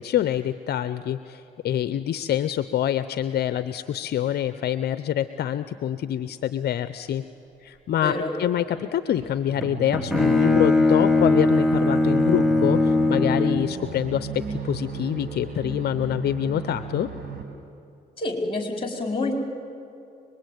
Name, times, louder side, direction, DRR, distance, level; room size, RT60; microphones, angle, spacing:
voice 1, 0.0-7.2 7.6-17.1, left 11 dB, 65° left, 13 dB, 0.7 m, -26 dB
voice 2, 8.0-8.3 18.2-19.3, left 2 dB, 30° left, 3 dB, 4.4 m, -27 dB
sound 1, 9.0-17.4, right 6 dB, 65° right, 5.2 m, -36 dB
Bowed string instrument, 9.6-13.8, left 2 dB, ahead, 2.4 m, -20 dB
25.0 x 21.0 x 9.2 m, 2.7 s
cardioid pair, 80°, 18 cm